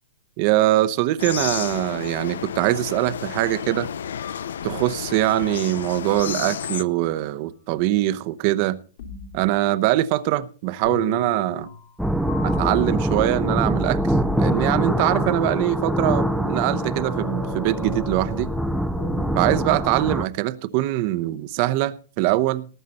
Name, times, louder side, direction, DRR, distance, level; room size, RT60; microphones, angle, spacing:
voice 1, 0.4-3.9 4.6-8.8 9.3-11.7 12.4-14.0 14.4-18.5 19.4-22.7, right 16 dB, 35° right, 0.9 m, -22 dB
sound 1, 1.2-6.8, left 8 dB, 90° left, 0.7 m, -31 dB
sound 2, 4.6-5.4 6.2-7.3 9.0-9.6 10.8-12.0 12.3-19.7, left 5 dB, 55° left, 3.7 m, -37 dB
sound 3, 12.0-20.3, right 1 dB, ahead, 0.6 m, -24 dB
19.0 x 8.3 x 4.2 m
supercardioid pair, 170°, 0 cm